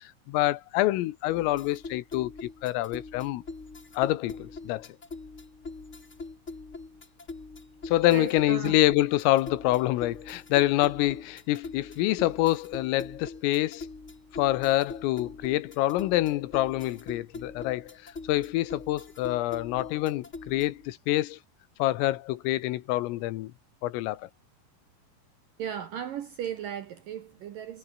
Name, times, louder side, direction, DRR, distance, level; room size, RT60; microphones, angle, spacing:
voice 1, 0.0-3.4 4.0-4.9 7.9-13.9 14.3-18.0 18.3-21.4 21.8-23.5 23.8-24.3, left 16 dB, 85° left, 3.8 m, -26 dB
sound 1, 1.3-20.9, left 3 dB, 25° left, 1.6 m, -43 dB
voice 2, 8.1-8.8 25.6-27.8, right 9 dB, 75° right, 2.0 m, -36 dB
omnidirectional pair, 5.8 m